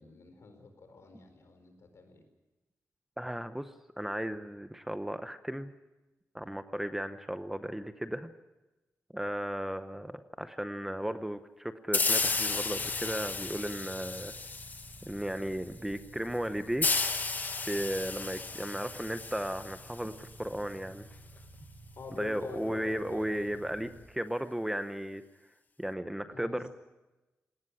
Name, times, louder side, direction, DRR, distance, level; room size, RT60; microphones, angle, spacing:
voice 1, 0.0-2.2 22.0-24.0 26.2-26.7, left 4 dB, 65° left, 7 dB, 4.4 m, -47 dB
voice 2, 3.2-3.7 4.0-5.7 6.3-8.3 9.1-14.3 15.0-16.9 17.7-21.0 22.1-25.2 25.8-26.7, equal, 5° right, 10 dB, 0.7 m, -35 dB
sound 1, 11.9-15.3 16.8-20.3, left 4 dB, 35° left, 1.2 m, -33 dB
sound 2, 12.2-24.0, right 2 dB, 20° right, 5.4 m, -52 dB
19.0 x 18.0 x 9.9 m, 1.1 s
wide cardioid pair, 140°, 5 cm